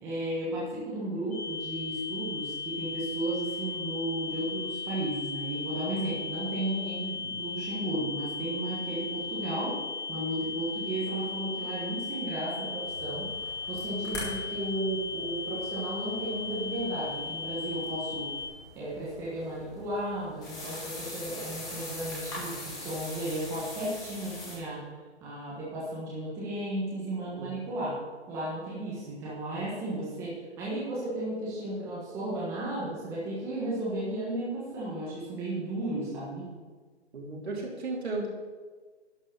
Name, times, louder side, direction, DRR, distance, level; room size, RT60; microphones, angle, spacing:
voice 1, 0.0-9.7 10.1-13.3 13.7-18.3 18.7-24.8 25.2-27.9 28.3-36.5, right 1 dB, 10° right, -7 dB, 1.2 m, -34 dB
sound 1, 1.3-18.5, left 4 dB, 35° left, 2.1 m, -37 dB
sound 2, 12.8-24.6, left 1 dB, 10° left, 2.1 m, -43 dB
voice 2, 37.1-38.3, right 2 dB, 65° right, -3 dB, 3.5 m, -34 dB
11.5 x 5.4 x 6.6 m, 1.4 s
hypercardioid pair, 160°, 34 cm